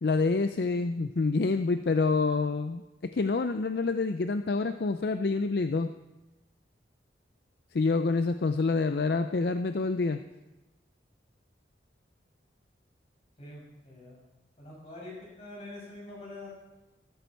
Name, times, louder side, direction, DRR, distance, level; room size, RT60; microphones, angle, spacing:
voice 1, 0.0-5.9 7.7-10.2, left 3 dB, 60° left, 9 dB, 0.5 m, -27 dB
voice 2, 13.4-14.2 14.6-16.5, left 2 dB, 35° left, -3 dB, 5.9 m, -45 dB
13.5 x 13.5 x 4.6 m, 1.0 s
head